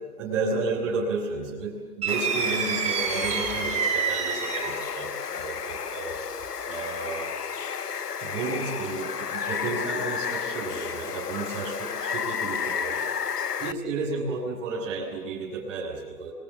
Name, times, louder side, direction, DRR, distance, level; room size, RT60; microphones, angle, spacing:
voice 1, 0.2-6.2 6.7-7.3 8.2-13.0 13.6-16.3, right 3 dB, 30° right, -5 dB, 7.0 m, -32 dB
sound 1, 2.0-4.9, right 7 dB, 15° right, 3.0 m, -28 dB
Water, 2.1-13.7, left 6 dB, 90° left, 1.3 m, -32 dB
27.0 x 25.0 x 7.4 m, 1.4 s
hypercardioid pair, 140°, 45 cm